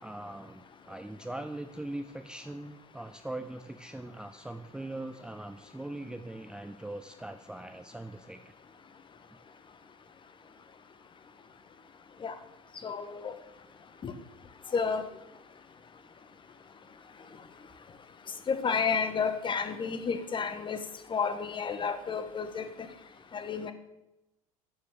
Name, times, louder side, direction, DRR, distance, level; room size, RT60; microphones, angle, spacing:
voice 1, 0.0-8.5 9.3-9.4 12.8-12.9, right 1 dB, 5° right, 8 dB, 0.7 m, -41 dB
voice 2, 12.8-13.3 14.0-14.1 14.7-15.0 18.5-20.8 21.1-22.7 23.3-23.7, left 5 dB, 25° left, 10 dB, 1.3 m, -31 dB
12.5 x 7.6 x 7.1 m, 0.95 s
figure-of-eight pair, 70°, 19 cm